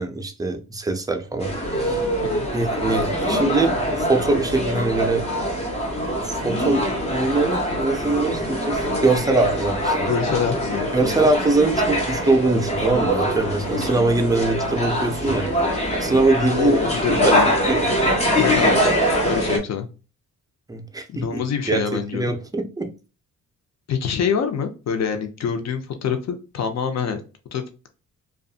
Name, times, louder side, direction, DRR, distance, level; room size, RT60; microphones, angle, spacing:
voice 1, 0.0-2.1 2.5-5.2 6.2-6.8 7.1-10.1 10.9-15.5 16.0-16.8 17.1-17.8 20.7-22.9, right 2 dB, 10° right, 5 dB, 0.5 m, -22 dB
sound 1, 1.4-19.6, equal, 20° left, 0.9 m, -23 dB
voice 2, 10.0-11.3 16.5-17.5 18.3-19.0 19.2-19.9 21.1-22.3 23.9-27.2 27.5-27.6, left 7 dB, 55° left, 7 dB, 0.7 m, -25 dB
2.5 x 2.4 x 2.3 m, 0.33 s
cardioid pair, 90°, 33 cm